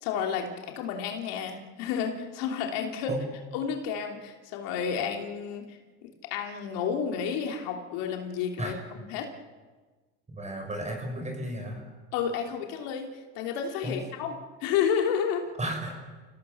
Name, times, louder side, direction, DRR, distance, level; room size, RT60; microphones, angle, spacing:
voice 1, 0.0-3.1 3.5-8.7 9.1-9.3 12.1-13.1 13.3-15.5, left 7 dB, 75° left, 3 dB, 3.1 m, -31 dB
voice 2, 10.3-11.8 13.8-14.0 15.6-15.9, right 1 dB, 20° right, 2 dB, 6.6 m, -33 dB
29.5 x 17.5 x 7.2 m, 1.3 s
supercardioid pair, 100°, 34 cm